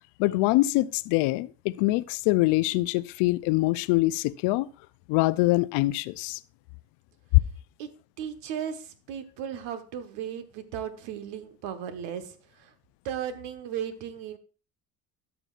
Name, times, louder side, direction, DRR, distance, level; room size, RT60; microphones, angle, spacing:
voice 1, 0.2-4.7 5.1-6.4, left 19 dB, 70° left, 0.6 m, -24 dB
voice 2, 8.2-12.7 13.0-14.4, right 9 dB, 70° right, 1.3 m, -36 dB
13.0 x 6.0 x 2.5 m
supercardioid pair, 75°, 44 cm